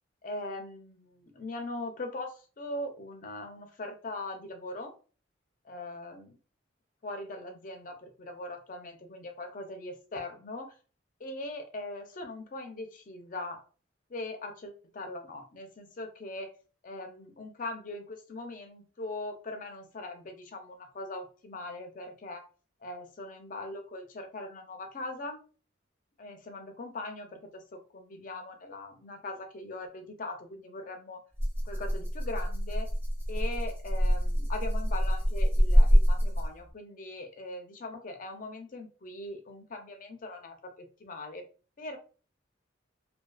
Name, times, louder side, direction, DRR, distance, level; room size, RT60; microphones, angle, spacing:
voice 1, 0.2-4.9 5.6-6.4 7.0-10.7 11.2-13.6 14.1-16.5 16.8-22.4 22.8-25.4 26.2-31.2 31.6-32.9 33.3-41.4 41.8-42.0, left 2 dB, 40° left, 5 dB, 0.5 m, -40 dB
Rattle (instrument), 31.4-36.7, equal, 10° right, 0.6 m, -25 dB
2.4 x 2.3 x 2.2 m, 0.37 s
head